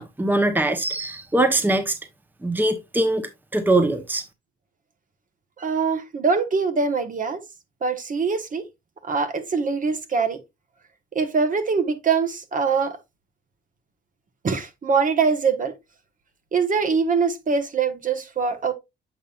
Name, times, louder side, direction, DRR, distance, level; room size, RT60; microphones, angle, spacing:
voice 1, 0.0-2.0 2.4-3.2 3.5-4.2, right 2 dB, 10° right, 0.9 m, -22 dB
voice 2, 5.6-7.4 7.8-8.6 9.0-10.4 11.1-13.0 14.4-15.7 16.5-18.7, right 5 dB, 40° right, 1.2 m, -23 dB
7.9 x 5.5 x 2.4 m
cardioid pair, 90°, 20 cm